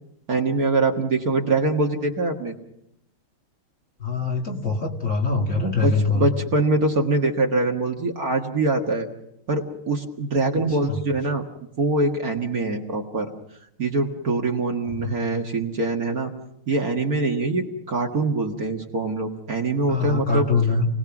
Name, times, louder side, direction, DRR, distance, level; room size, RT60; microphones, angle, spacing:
voice 1, 0.3-2.5 5.8-9.1 9.5-11.5 11.8-13.3 13.8-16.3 16.7-20.5, right 3 dB, 45° right, 2 dB, 2.0 m, -23 dB
voice 2, 4.0-6.3 10.8-11.0 15.0-15.2 19.9-20.9, left 4 dB, 35° left, 1 dB, 2.7 m, -23 dB
29.5 x 19.0 x 6.1 m, 0.80 s
omnidirectional pair, 2.3 m